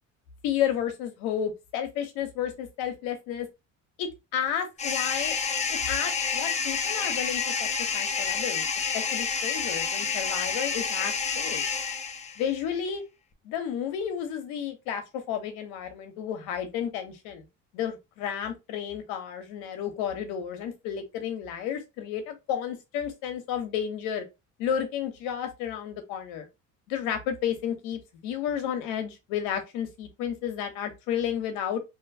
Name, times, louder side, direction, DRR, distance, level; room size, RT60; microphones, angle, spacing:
voice 1, 0.4-3.5 4.0-5.3 5.7-8.6 8.9-11.6 12.4-13.0 13.4-17.5 17.7-24.2 24.6-26.5 26.9-31.8, left 9 dB, 80° left, 0.8 m, -32 dB
sound 1, 4.8-12.5, left 5 dB, 20° left, 0.4 m, -29 dB
2.6 x 2.2 x 2.6 m
supercardioid pair, 85°, 37 cm